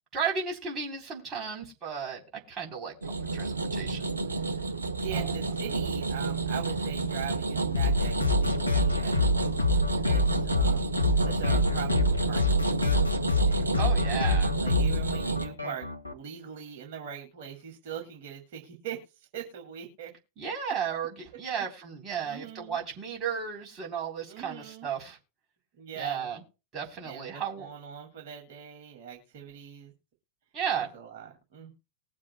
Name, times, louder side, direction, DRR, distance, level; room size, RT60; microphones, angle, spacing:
voice 1, 0.1-4.1 5.1-5.3 13.8-14.5 20.4-25.2 25.9-26.4 26.7-27.7 30.5-30.9, right 7 dB, 25° right, 0 dB, 3.7 m, -34 dB
sound 1, 3.0-15.5, right 3 dB, 75° right, 0.9 m, -30 dB
voice 2, 5.0-9.3 10.1-12.7 13.4-13.8 14.6-20.1 22.2-22.8 24.3-24.9 25.8-26.3 27.0-29.9 30.8-31.7, right 8 dB, 50° right, 1 dB, 2.3 m, -42 dB
sound 2, 7.7-16.1, left 2 dB, 80° left, 1.3 m, -26 dB
20.5 x 7.4 x 2.2 m, 0.31 s
figure-of-eight pair, 90°, 0 cm